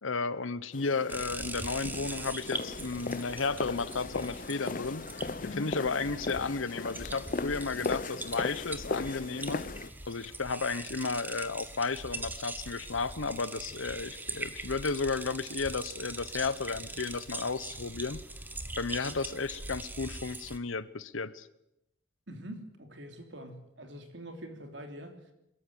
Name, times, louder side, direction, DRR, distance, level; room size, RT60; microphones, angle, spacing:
voice 1, 0.0-9.6 10.1-18.2 18.8-21.5, left 4 dB, 90° left, 16 dB, 1.0 m, -33 dB
sound 1, 0.7-9.9, left 3 dB, 40° left, 0.7 m, -38 dB
sound 2, 1.1-20.6, right 2 dB, 10° right, 1.1 m, -42 dB
voice 2, 22.3-25.3, right 1 dB, 65° right, 5 dB, 3.2 m, -45 dB
23.0 x 14.0 x 9.3 m, 0.86 s
head